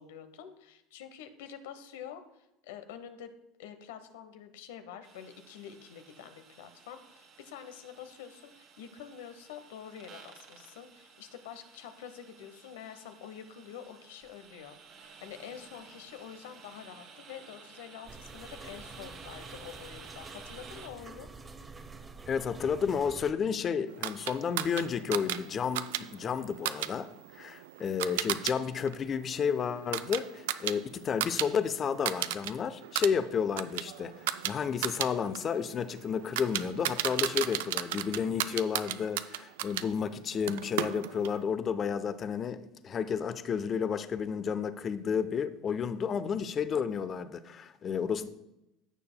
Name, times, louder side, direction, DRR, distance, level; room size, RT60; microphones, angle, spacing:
voice 1, 0.0-3.3 3.6-21.3, left 9 dB, 80° left, 9 dB, 0.9 m, -47 dB
sound 1, 5.0-20.9, right 5 dB, 55° right, 2.0 m, -53 dB
sound 2, 18.1-23.3, right 3 dB, 25° right, 0.8 m, -48 dB
voice 2, 22.3-27.1 27.3-48.3, left 7 dB, 40° left, 12 dB, 0.7 m, -31 dB
sound 3, 24.0-28.5 28.9-31.5 31.8-32.5 32.8-39.9 40.5-41.4, right 13 dB, 75° right, 0.4 m, -35 dB
15.0 x 6.7 x 2.2 m, 0.88 s
hypercardioid pair, 85°, 0 cm